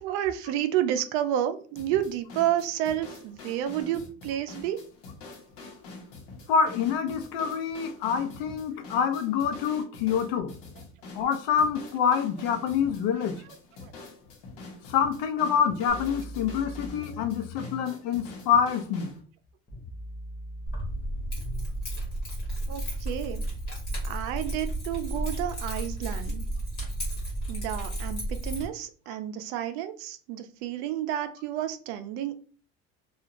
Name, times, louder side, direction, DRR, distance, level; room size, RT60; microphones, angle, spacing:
voice 1, 0.0-4.8 13.8-13.9 16.7-16.8 17.6-17.7 22.7-23.4 24.0-26.4 27.5-32.4, right 11 dB, 85° right, 10 dB, 0.5 m, -30 dB
sound 1, 1.8-19.2, left 3 dB, 65° left, 0.9 m, -45 dB
voice 2, 6.5-10.5 11.1-13.4 14.9-19.1, left 7 dB, 90° left, 7 dB, 0.6 m, -26 dB
sound 2, 15.9-17.8 19.7-21.7 23.5-23.6, left 2 dB, 15° left, 0.7 m, -41 dB
Keys jangling, 20.7-28.6, right 1 dB, 30° left, 1.3 m, -32 dB
2.9 x 2.4 x 2.5 m, 0.41 s
cardioid pair, 160°, 30 cm